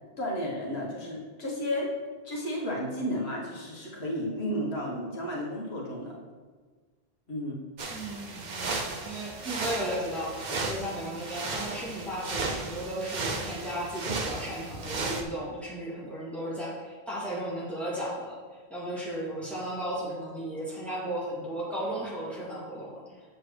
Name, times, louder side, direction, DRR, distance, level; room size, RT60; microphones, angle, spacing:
voice 1, 0.2-1.9 2.2-6.1 7.3-7.6, equal, 80° left, -4 dB, 1.6 m, -32 dB
sound 1, 7.8-15.2, right 3 dB, 50° right, 0.8 m, -35 dB
voice 2, 7.9-10.3 10.7-18.4 18.7-23.0, right 1 dB, ahead, -8 dB, 2.4 m, -35 dB
7.8 x 7.0 x 3.3 m, 1.4 s
omnidirectional pair, 1.1 m